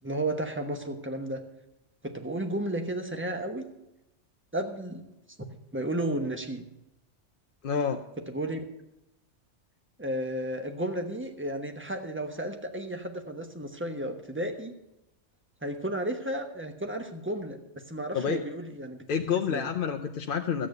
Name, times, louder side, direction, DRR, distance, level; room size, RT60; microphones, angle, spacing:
voice 1, 0.0-1.4 2.0-3.7 4.5-5.0 5.7-6.7 8.3-8.6 10.0-14.7 15.6-19.0 19.3-19.7, right 1 dB, 10° right, 5 dB, 1.1 m, -33 dB
voice 2, 7.6-8.0 18.1-18.4 19.1-20.7, left 7 dB, 55° left, 5 dB, 0.8 m, -28 dB
13.0 x 8.7 x 6.5 m, 0.89 s
omnidirectional pair, 1.2 m